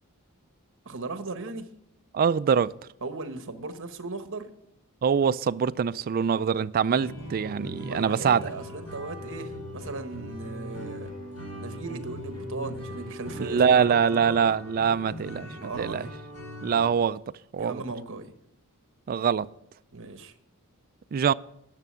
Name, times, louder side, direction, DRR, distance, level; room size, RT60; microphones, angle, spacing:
voice 1, 0.8-1.7 3.0-4.5 7.8-11.1 11.5-14.4 15.1-16.1 17.6-18.3 19.9-20.3, right 3 dB, 60° right, 1.1 m, -38 dB
voice 2, 2.1-2.7 5.0-8.4 13.4-16.1 16.6-17.2 17.5-17.8 19.1-19.5 21.1-21.3, right 7 dB, 40° right, 0.3 m, -24 dB
sound 1, 6.9-16.9, equal, 90° left, 4.3 m, -40 dB
10.5 x 6.7 x 7.5 m
head